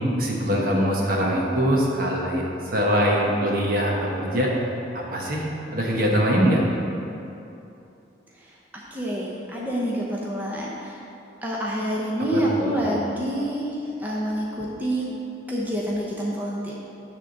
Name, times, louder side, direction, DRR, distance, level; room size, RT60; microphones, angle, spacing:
voice 1, 0.2-4.5 4.9-5.4 5.7-6.6 12.3-12.9, equal, 50° right, -2 dB, 1.2 m, -23 dB
voice 2, 8.3-11.1 11.4-15.1 15.5-16.7, right 1 dB, 10° right, -5 dB, 0.8 m, -27 dB
9.6 x 3.6 x 6.5 m, 2.9 s
head